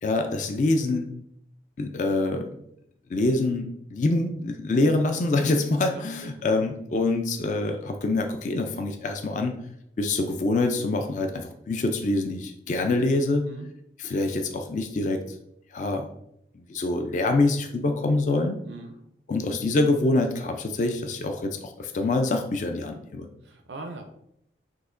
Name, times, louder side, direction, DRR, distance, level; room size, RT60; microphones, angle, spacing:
voice 1, 0.0-1.1 1.8-2.5 3.1-9.6 10.0-13.5 14.0-15.4 15.7-16.1 16.5-18.6 19.3-23.3, left 2 dB, 45° left, 5 dB, 0.3 m, -25 dB
voice 2, 5.9-6.5 13.3-13.7 18.6-19.0 23.4-24.1, right 3 dB, 85° right, 4 dB, 0.4 m, -41 dB
6.2 x 2.8 x 2.5 m, 0.75 s
head